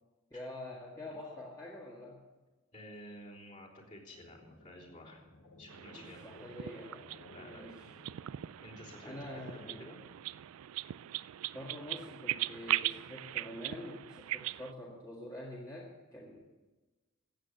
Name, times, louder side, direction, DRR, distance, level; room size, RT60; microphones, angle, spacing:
voice 1, 0.3-2.2 5.9-7.1 7.4-7.9 9.0-9.9 11.5-16.4, left 1 dB, 20° left, -4 dB, 1.8 m, -46 dB
voice 2, 2.7-5.2 5.6-6.5 7.3-7.6 8.6-9.1 9.5-10.0, left 1 dB, 35° left, -4 dB, 3.5 m, -51 dB
sound 1, 4.1-9.8, left 2 dB, 70° left, 1.8 m, -59 dB
sound 2, 5.7-14.7, right 14 dB, 75° right, 0.3 m, -40 dB
14.0 x 9.1 x 7.9 m, 1.2 s
head